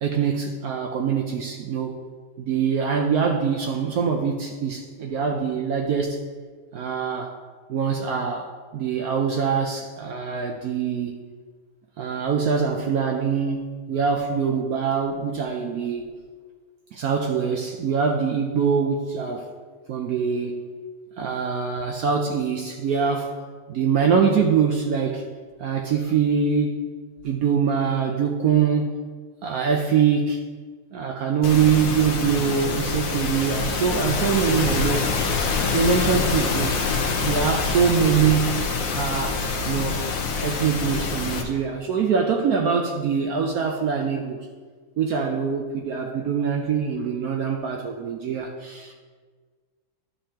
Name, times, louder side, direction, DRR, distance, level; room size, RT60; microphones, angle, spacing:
voice 1, 0.0-1.9 2.4-6.2 6.7-7.3 7.7-8.5 8.7-11.2 12.0-16.1 16.9-19.5 19.9-20.6 21.2-23.4 23.7-25.2 25.6-26.8 27.2-29.0 29.4-30.4 30.9-35.1 35.6-36.7 37.2-38.6 38.9-40.1 40.4-44.4 45.0-48.9, right 6 dB, 75° right, 2 dB, 0.8 m, -23 dB
sound 1, 31.4-41.4, left 4 dB, 55° left, 1.0 m, -25 dB
12.0 x 5.5 x 2.8 m, 1.5 s
omnidirectional pair, 2.2 m